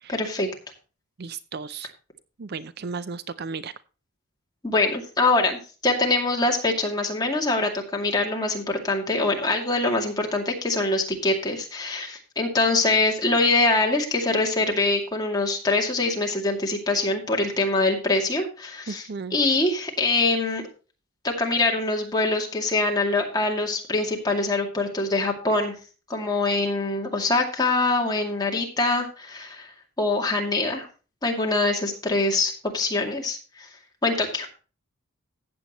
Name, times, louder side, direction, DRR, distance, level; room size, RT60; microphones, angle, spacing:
voice 1, 0.1-0.5 4.6-20.6 21.2-25.8 26.1-29.7 30.0-30.9 31.2-33.7 34.0-34.6, left 2 dB, 15° left, 1 dB, 2.3 m, -24 dB
voice 2, 1.2-1.9 2.4-3.7 18.9-19.4, right 4 dB, 45° right, 15 dB, 0.4 m, -34 dB
14.5 x 8.6 x 3.0 m, 0.35 s
head